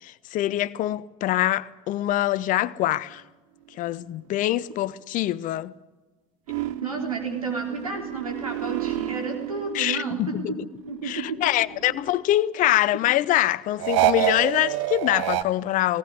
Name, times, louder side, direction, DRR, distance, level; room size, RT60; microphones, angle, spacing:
voice 1, 0.0-3.2 3.8-5.7 9.7-10.6 11.0-16.0, left 14 dB, 45° left, 0.7 m, -24 dB
sound 1, 6.5-10.4 10.7-12.3 13.8-15.4, right 14 dB, 65° right, 0.9 m, -28 dB
voice 2, 6.5-10.6 10.9-11.5 11.9-12.2, right 4 dB, 85° right, 3.7 m, -32 dB
19.0 x 17.5 x 9.6 m
figure-of-eight pair, 65°, 18 cm